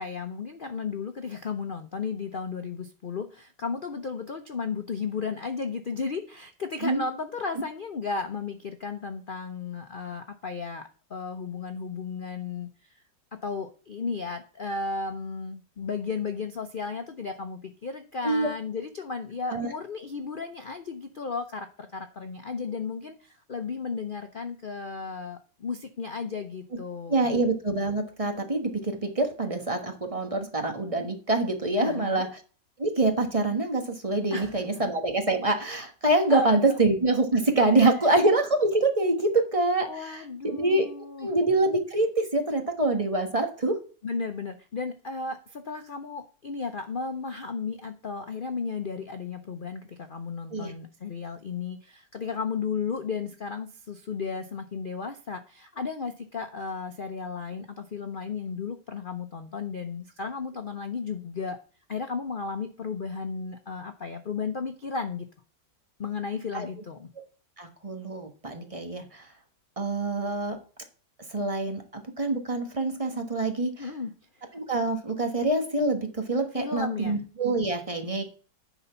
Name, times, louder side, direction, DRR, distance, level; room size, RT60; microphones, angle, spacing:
voice 1, 0.0-13.0 13.4-27.4 31.8-32.3 34.3-34.8 36.3-36.8 37.6-37.8 39.9-41.3 44.0-61.6 61.9-65.3 66.0-67.1 73.8-74.5 76.5-77.2, left 5 dB, 70° left, 7 dB, 0.5 m, -34 dB
voice 2, 27.1-32.3 32.8-40.9 41.2-43.8 50.5-50.7 66.5-66.7 67.6-69.3 69.8-70.6 71.3-73.9 74.5-78.2, right 2 dB, 20° right, 5 dB, 1.0 m, -25 dB
10.0 x 4.0 x 5.7 m, 0.38 s
omnidirectional pair, 1.9 m